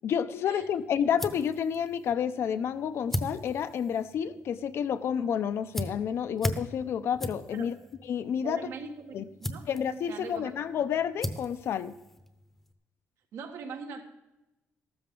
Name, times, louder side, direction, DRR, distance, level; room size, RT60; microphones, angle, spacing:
voice 1, 0.0-7.7 8.1-8.6 9.1-9.2 9.7-12.0, left 8 dB, 60° left, 12 dB, 0.7 m, -30 dB
sound 1, 0.6-12.7, equal, 5° left, 0.9 m, -40 dB
voice 2, 8.4-9.7 10.1-10.9 13.3-14.0, right 5 dB, 75° right, 4 dB, 1.7 m, -42 dB
14.0 x 13.0 x 3.9 m, 0.95 s
cardioid pair, 150°, 5 cm